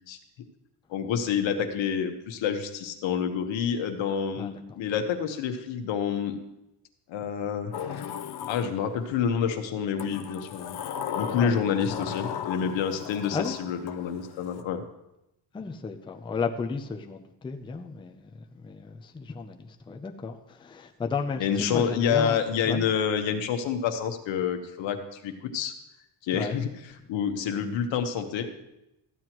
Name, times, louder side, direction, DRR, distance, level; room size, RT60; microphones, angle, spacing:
voice 1, 0.9-6.4 7.1-7.7 8.5-10.8 11.1-14.8 21.4-25.7 26.2-26.7 27.1-28.5, left 7 dB, 80° left, 6 dB, 1.2 m, -28 dB
voice 2, 4.4-4.8 11.3-11.6 11.9-12.1 13.3-13.6 15.5-22.9 26.3-26.6, left 5 dB, 10° left, 4 dB, 0.4 m, -34 dB
Sliding door, 7.7-9.2 10.0-14.6, left 8 dB, 55° left, 0.7 m, -36 dB
14.0 x 9.5 x 3.0 m, 0.89 s
cardioid pair, 155°, 44 cm